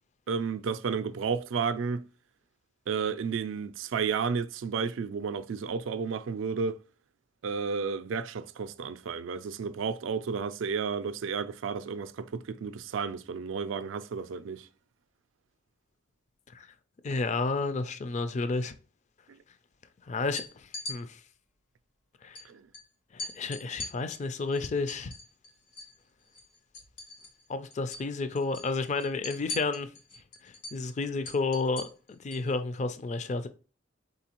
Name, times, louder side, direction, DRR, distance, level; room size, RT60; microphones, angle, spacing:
voice 1, 0.3-2.0 2.9-6.8 7.4-14.7 19.3-19.4 22.5-22.6, right 5 dB, 75° right, 0.4 m, -32 dB
voice 2, 17.0-18.8 20.1-21.2 22.2-22.4 23.1-25.1 27.5-29.9 30.4-31.9 32.2-33.5, left 3 dB, 35° left, 0.4 m, -31 dB
sound 1, 20.2-21.0 22.3-22.4 22.7-22.8 23.2-26.0 26.3-27.5 27.7-28.1 28.4-32.5, left 2 dB, 80° left, 1.4 m, -41 dB
4.2 x 3.9 x 2.9 m
head